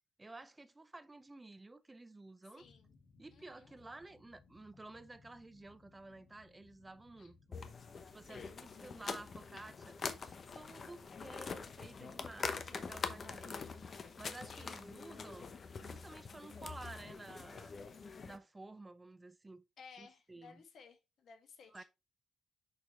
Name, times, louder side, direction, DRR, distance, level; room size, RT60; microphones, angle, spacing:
voice 1, 0.2-2.7 3.2-7.6 8.1-13.7 14.2-15.5 15.8-17.8 18.3-19.6 20.0-20.6 21.7-21.8, right 2 dB, 10° right, 0.5 m, -53 dB
voice 2, 2.5-2.9 3.3-3.8 7.2-7.3 8.2-8.6 14.5-14.7 19.8-21.8, left 5 dB, 50° left, 1.9 m, -58 dB
sound 1, 2.6-12.1, left 4 dB, 70° left, 2.8 m, -65 dB
sound 2, 7.5-18.4, left 5 dB, 35° left, 0.8 m, -45 dB
6.4 x 5.6 x 3.1 m
cardioid pair, 170°, 0 cm